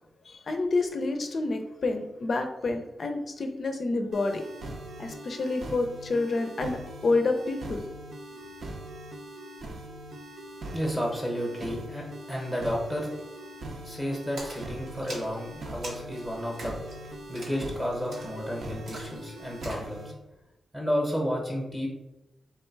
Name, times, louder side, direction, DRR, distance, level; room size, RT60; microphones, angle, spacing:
voice 1, 0.2-4.4 5.0-7.8, left 3 dB, 40° left, 6 dB, 0.5 m, -28 dB
sound 1, 4.1-20.1, right 1 dB, 55° right, 0.7 m, -42 dB
voice 2, 10.7-13.1 13.8-16.8 17.3-20.1 20.7-21.9, equal, 10° right, -2 dB, 0.9 m, -31 dB
Splash splatter, 14.4-19.9, right 1 dB, 90° right, 1.5 m, -44 dB
3.5 x 3.2 x 4.6 m, 0.97 s
wide cardioid pair, 170°, 0 cm